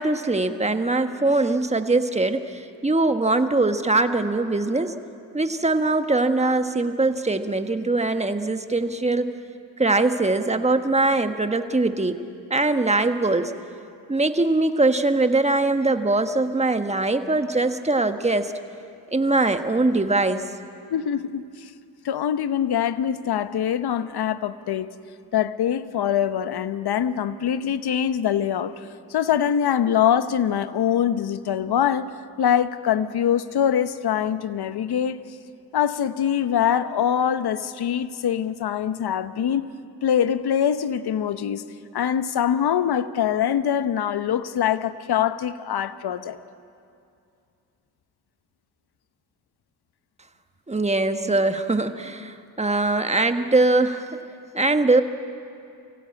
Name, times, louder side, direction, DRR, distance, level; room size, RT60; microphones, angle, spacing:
voice 1, 0.0-4.9 5.3-9.3 9.8-12.2 12.5-13.5 14.1-18.5 19.1-20.4 50.7-54.1 54.5-55.0, right 2 dB, 15° right, 1.4 m, -22 dB
voice 2, 20.9-21.7 22.0-24.9 25.3-32.1 32.4-35.2 35.7-39.7 40.0-41.6 41.9-46.4, left 9 dB, 65° left, 1.0 m, -23 dB
24.0 x 16.5 x 8.7 m
supercardioid pair, 60°, 42 cm